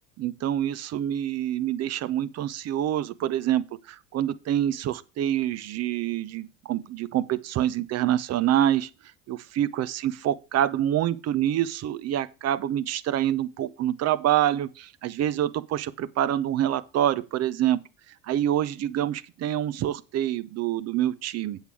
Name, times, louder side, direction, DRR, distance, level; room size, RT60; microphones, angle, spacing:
voice 1, 0.2-8.9 9.3-17.8 18.2-21.6, right 11 dB, 40° right, 0.7 m, -26 dB
8.2 x 8.1 x 4.7 m
hypercardioid pair, 80°, 39 cm